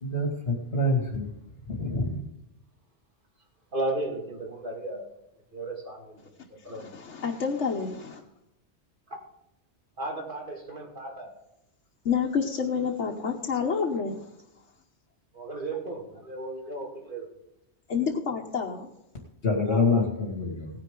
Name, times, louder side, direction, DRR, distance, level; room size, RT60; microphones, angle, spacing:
voice 1, 0.0-1.3 1.7-2.2 19.4-20.7, left 2 dB, 60° left, 0 dB, 2.4 m, -26 dB
voice 2, 3.7-5.1 5.5-6.2 6.5-7.0 10.0-11.3 15.3-17.3 19.6-20.2, right 2 dB, 50° right, 0 dB, 2.5 m, -35 dB
voice 3, 6.7-8.2 12.0-14.3 17.9-18.9, left 6 dB, 90° left, 0 dB, 1.4 m, -29 dB
17.5 x 9.9 x 3.8 m, 0.83 s
omnidirectional pair, 1.2 m